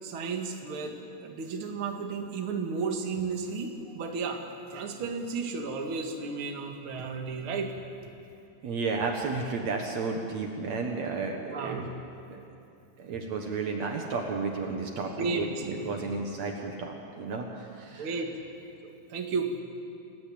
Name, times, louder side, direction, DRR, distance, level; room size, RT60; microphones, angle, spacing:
voice 1, 0.0-4.4 4.7-7.7 11.4-11.8 15.2-16.0 17.9-18.3 18.8-19.5, right 4 dB, 55° right, 2 dB, 1.4 m, -33 dB
voice 2, 8.6-11.9 12.3-12.4 13.0-17.5 17.7-18.2, right 4 dB, 90° right, 2 dB, 1.5 m, -32 dB
28.5 x 16.5 x 8.7 m, 2.6 s
omnidirectional pair, 5.6 m